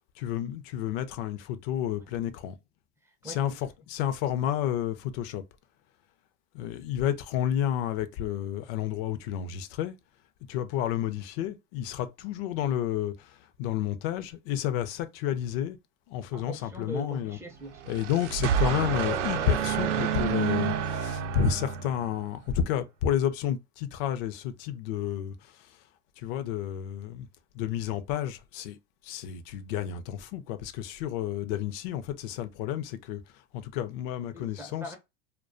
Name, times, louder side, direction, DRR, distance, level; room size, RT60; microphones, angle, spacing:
voice 1, 0.2-2.5 3.2-5.4 6.5-10.0 10.5-15.8 16.1-17.4 17.9-25.8 26.2-27.3 27.5-28.8 29.0-33.2 33.5-34.8, left 10 dB, 55° left, 0.5 m, -31 dB
voice 2, 3.0-3.6 16.3-18.0 34.3-35.0, equal, 10° right, 0.4 m, -41 dB
sound 1, 17.7-22.3, right 8 dB, 90° right, 0.5 m, -29 dB
2.3 x 2.2 x 2.4 m
supercardioid pair, 115°, 35 cm